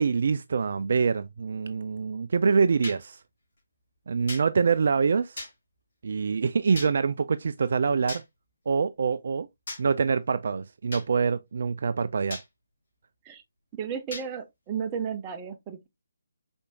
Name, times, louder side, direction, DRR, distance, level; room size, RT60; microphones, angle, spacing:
voice 1, 0.0-3.2 4.1-5.4 6.0-8.2 8.7-9.5 9.8-12.4, right 5 dB, 50° right, 0.3 m, -25 dB
sound 1, 2.8-3.0 4.3-4.4 5.4-5.5 6.7-6.9 8.1-8.2 9.7-9.8 10.9-11.1 12.3-12.5 14.1-14.3, left 2 dB, 50° left, 2.5 m, -37 dB
voice 2, 13.7-15.9, right 7 dB, 20° right, 0.7 m, -33 dB
5.1 x 4.3 x 2.4 m
figure-of-eight pair, 145°, 0 cm